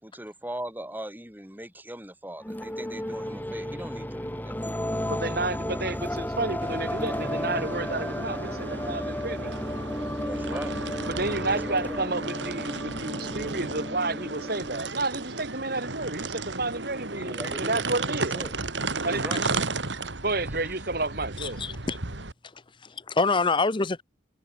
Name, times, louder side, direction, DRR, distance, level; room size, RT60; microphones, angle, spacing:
voice 1, 0.0-4.6 10.2-10.9 11.5-12.1 17.0-18.6 19.0-19.4, right 1 dB, 10° right, 6.5 m, -40 dB
sound 1, 2.4-15.4, equal, 10° left, 4.2 m, -33 dB
voice 2, 5.1-9.7 11.1-18.4 19.0-19.2 20.2-21.6, right 2 dB, 55° right, 5.6 m, -31 dB
sound 2, 6.6-22.3, right 3 dB, 90° right, 2.9 m, -34 dB
voice 3, 21.4-22.0 22.8-24.0, left 3 dB, 25° left, 0.8 m, -26 dB
head